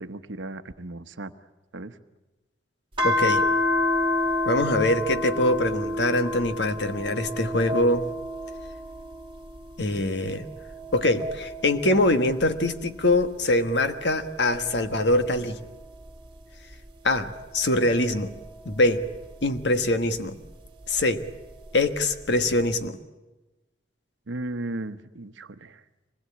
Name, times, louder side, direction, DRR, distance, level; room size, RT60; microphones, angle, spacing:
voice 1, 0.0-1.3 1.7-1.9 24.3-25.8, right 2 dB, 80° right, 10 dB, 1.0 m, -35 dB
voice 2, 3.0-3.4 4.4-8.1 9.8-10.5 10.9-15.6 17.0-18.3 18.6-19.0 19.4-20.4 20.9-21.2 21.7-23.0, left 1 dB, 65° left, 9 dB, 1.4 m, -23 dB
sound 1, 3.0-9.7 10.1-13.0 13.6-16.4 17.2-19.6 21.0-22.0, left 2 dB, 25° right, 2.9 m, -31 dB
25.0 x 20.0 x 8.6 m, 1.1 s
head